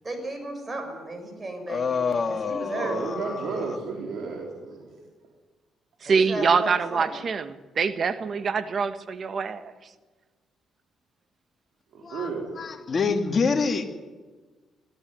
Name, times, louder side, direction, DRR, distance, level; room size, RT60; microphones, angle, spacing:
voice 1, 0.0-3.0 6.0-7.1, right 1 dB, 25° right, 6 dB, 6.5 m, -35 dB
voice 2, 1.7-3.8 12.0-12.3 12.5-13.8, left 5 dB, 40° left, 5 dB, 2.5 m, -27 dB
voice 3, 2.7-5.1 11.9-12.6, right 4 dB, 75° right, 0 dB, 4.1 m, -32 dB
voice 4, 6.0-9.9, right 5 dB, 50° right, 11 dB, 1.5 m, -25 dB
22.5 x 14.5 x 9.6 m, 1.3 s
cardioid pair, 90°, 0 cm